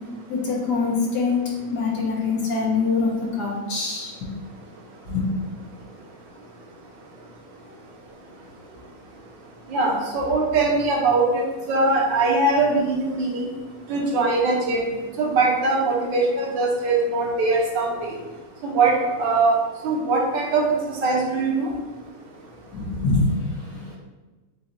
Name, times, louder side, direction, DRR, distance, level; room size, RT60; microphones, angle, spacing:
voice 1, 0.3-4.3 5.1-5.5 22.7-23.3, left 4 dB, 65° left, -3 dB, 1.6 m, -24 dB
voice 2, 9.7-11.4 11.7-13.5 13.9-14.9 15.2-18.1 18.6-19.6 19.8-20.7 21.0-21.7, right 3 dB, 85° right, -1 dB, 1.6 m, -21 dB
7.1 x 2.7 x 2.6 m, 1.2 s
omnidirectional pair, 1.9 m